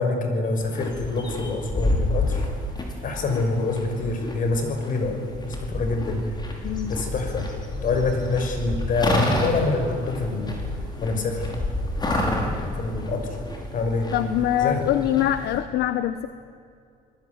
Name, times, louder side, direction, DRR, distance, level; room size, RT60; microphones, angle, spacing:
voice 1, 0.0-2.4 3.0-5.2 5.4-6.2 6.9-7.4 7.8-10.7 11.0-11.5 12.8-13.2 13.7-14.1 14.6-14.9, left 3 dB, 50° left, 5 dB, 5.9 m, -26 dB
sound 1, 0.6-15.6, left 1 dB, 25° left, 5.4 m, -29 dB
voice 2, 6.6-7.0 14.1-16.3, left 12 dB, 75° left, 11 dB, 1.0 m, -23 dB
28.0 x 20.0 x 9.6 m, 2.4 s
cardioid pair, 110°, 17 cm